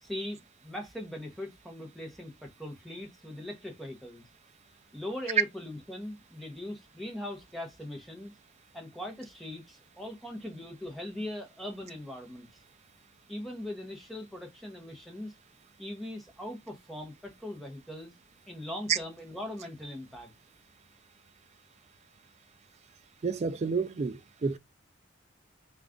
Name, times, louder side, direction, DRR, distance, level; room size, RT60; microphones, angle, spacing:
voice 1, 0.0-4.2 4.9-8.3 8.7-12.5 13.3-15.3 15.8-18.1 18.5-20.3, left 1 dB, ahead, 0.9 m, -40 dB
voice 2, 23.2-24.6, right 5 dB, 35° right, 0.3 m, -29 dB
4.0 x 2.4 x 3.5 m
head